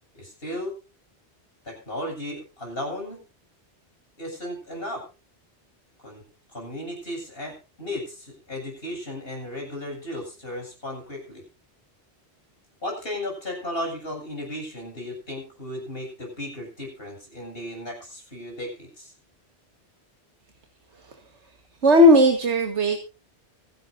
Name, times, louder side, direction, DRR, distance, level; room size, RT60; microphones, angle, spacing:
voice 1, 0.1-0.7 1.6-3.2 4.2-5.1 6.0-6.2 6.5-11.4 12.8-19.1, left 1 dB, 60° left, 1 dB, 7.7 m, -35 dB
voice 2, 21.8-23.0, left 1 dB, 90° right, 5 dB, 2.0 m, -17 dB
25.0 x 11.5 x 2.7 m, 0.32 s
omnidirectional pair, 1.1 m